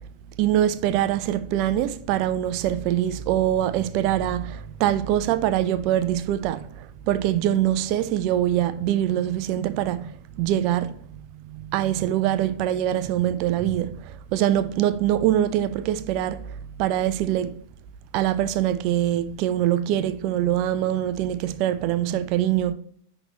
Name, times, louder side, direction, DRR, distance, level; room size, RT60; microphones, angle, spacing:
voice 1, 0.4-10.1 10.4-10.9 11.5-16.4 16.8-17.5 18.1-22.7, right 12 dB, 45° right, 0.4 m, -23 dB
9.8 x 3.3 x 3.0 m
figure-of-eight pair, 90°, 0 cm